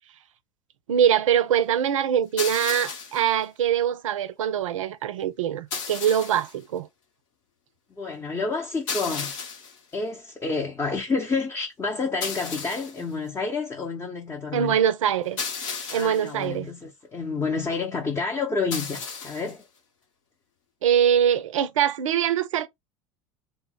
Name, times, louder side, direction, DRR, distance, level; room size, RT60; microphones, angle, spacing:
voice 1, 0.9-6.9 14.5-15.4 15.9-16.7 20.8-22.7, right 9 dB, 75° right, 0.4 m, -23 dB
sound 1, 2.4-3.3 5.7-6.5 8.9-9.8 12.2-13.0 15.4-16.3 18.7-19.5, left 5 dB, 70° left, 0.9 m, -33 dB
voice 2, 7.9-9.3 9.9-14.8 15.9-19.6, left 4 dB, 15° left, 0.6 m, -29 dB
2.0 x 2.0 x 3.6 m
hypercardioid pair, 80°, 17 cm